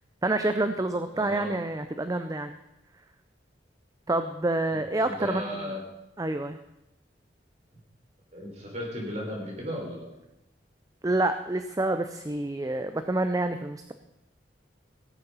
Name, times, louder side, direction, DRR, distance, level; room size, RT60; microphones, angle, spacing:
voice 1, 0.2-2.5 4.1-5.4 6.2-6.6 11.0-13.9, right 2 dB, 20° right, 9 dB, 0.5 m, -27 dB
voice 2, 1.1-1.5 5.0-5.8 8.3-10.1, equal, 40° right, -2 dB, 4.0 m, -35 dB
16.5 x 8.2 x 5.5 m, 0.90 s
head